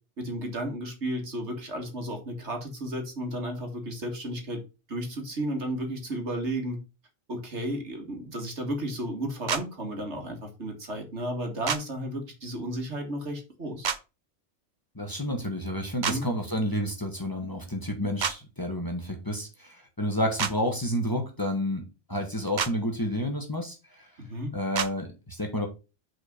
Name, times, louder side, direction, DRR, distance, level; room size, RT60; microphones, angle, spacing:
voice 1, 0.2-4.6 4.9-6.8 7.3-13.9 16.1-16.2 24.2-24.5, right 1 dB, 70° right, 3 dB, 2.2 m, -33 dB
sound 1, 9.5-9.6 11.7-11.8 13.8-14.0 16.0-16.2 18.2-18.4 20.4-20.5 22.6-22.7 24.7-24.9, right 7 dB, 45° right, 0.7 m, -27 dB
voice 2, 14.9-24.1 24.5-25.7, equal, 20° left, 3 dB, 1.6 m, -30 dB
6.0 x 4.7 x 5.2 m, 0.29 s
omnidirectional pair, 1.2 m